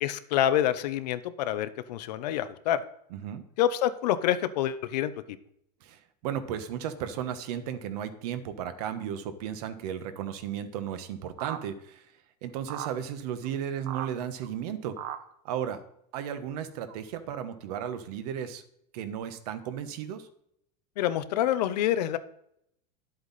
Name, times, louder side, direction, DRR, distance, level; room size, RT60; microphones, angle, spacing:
voice 1, 0.0-2.8 3.6-5.4 21.0-22.2, left 11 dB, 85° left, 13 dB, 0.8 m, -27 dB
voice 2, 3.1-3.4 5.8-12.1 12.4-15.0 15.4-15.8 16.1-18.6 18.9-20.3, right 9 dB, 70° right, 10 dB, 1.2 m, -35 dB
sound 1, 11.4-11.6 12.7-12.9 13.4-13.5 13.9-14.1 14.4-14.5 15.0-15.2 16.3-16.4 16.9-17.0, right 11 dB, 45° right, 0.8 m, -36 dB
11.0 x 7.9 x 4.1 m, 0.74 s
supercardioid pair, 155°, 20 cm